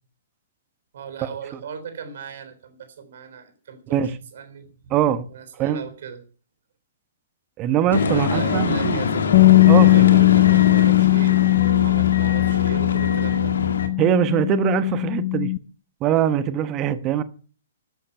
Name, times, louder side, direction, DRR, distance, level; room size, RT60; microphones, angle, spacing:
voice 1, 0.9-4.9 5.3-6.2 8.1-11.4 11.8-13.5, right 7 dB, 55° right, 3.7 m, -38 dB
voice 2, 4.9-5.3 5.6-5.8 7.6-9.0 9.7-10.1 14.0-15.5 16.0-17.2, right 10 dB, 25° right, 1.1 m, -22 dB
sound 1, 7.9-13.9, left 5 dB, 65° left, 2.1 m, -24 dB
Bass guitar, 9.3-15.6, left 21 dB, 40° left, 0.6 m, -18 dB
13.5 x 11.5 x 5.6 m
figure-of-eight pair, 115°, 0 cm